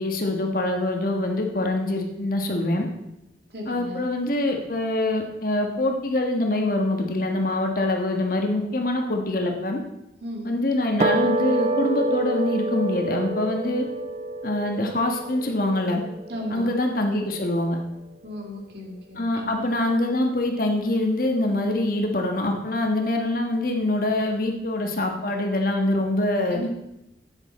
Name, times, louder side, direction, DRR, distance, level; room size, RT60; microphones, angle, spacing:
voice 1, 0.0-2.9 3.7-9.8 10.4-13.8 14.4-16.0 16.5-17.8 19.2-26.7, left 1 dB, 50° left, 3 dB, 1.3 m, -24 dB
voice 2, 3.5-4.0 10.2-10.5 16.3-16.7 18.2-19.7 26.5-26.7, left 1 dB, 60° right, 0 dB, 2.1 m, -35 dB
sound 1, 11.0-17.5, right 2 dB, 35° right, 0.7 m, -28 dB
11.5 x 8.9 x 4.2 m, 0.89 s
head